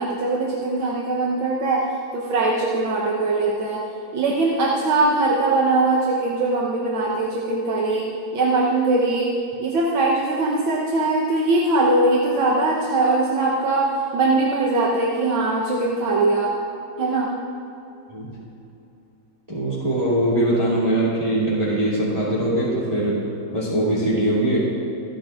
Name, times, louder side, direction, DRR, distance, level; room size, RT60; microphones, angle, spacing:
voice 1, 0.0-3.8 4.1-8.1 8.3-9.3 9.6-16.5 17.0-17.3, right 2 dB, 80° right, -4 dB, 1.8 m, -21 dB
voice 2, 19.5-23.2 23.5-24.6, right 1 dB, 20° right, -8 dB, 2.8 m, -21 dB
25.5 x 9.3 x 2.5 m, 2.8 s
omnidirectional pair, 2.2 m